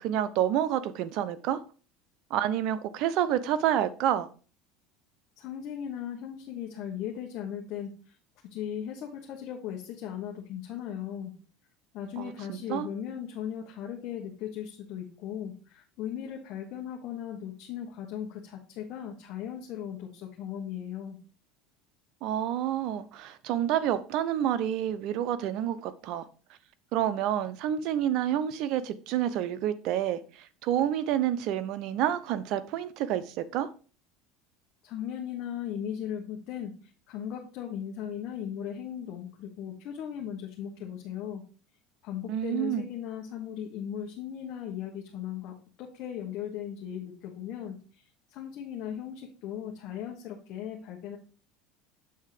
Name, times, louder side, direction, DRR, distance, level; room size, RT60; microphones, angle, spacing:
voice 1, 0.0-1.6 2.3-4.3 12.2-12.9 22.2-26.2 26.9-33.7 42.3-42.9, right 11 dB, 60° right, 0.7 m, -29 dB
voice 2, 5.4-8.1 8.5-11.3 11.9-21.2 34.8-41.4 42.0-51.2, left 9 dB, 60° left, 1.3 m, -37 dB
8.0 x 3.7 x 4.9 m
supercardioid pair, 110°, 0 cm